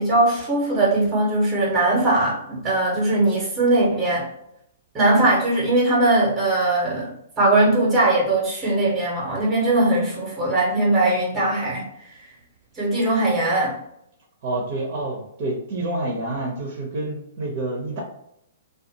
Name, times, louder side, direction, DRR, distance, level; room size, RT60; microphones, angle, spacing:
voice 1, 0.0-4.3 4.9-11.8 12.7-13.8, right 2 dB, 20° right, -4 dB, 1.0 m, -20 dB
voice 2, 14.4-18.0, right 2 dB, 45° right, 1 dB, 0.7 m, -28 dB
2.4 x 2.3 x 2.8 m, 0.76 s
figure-of-eight pair, 120°, 0 cm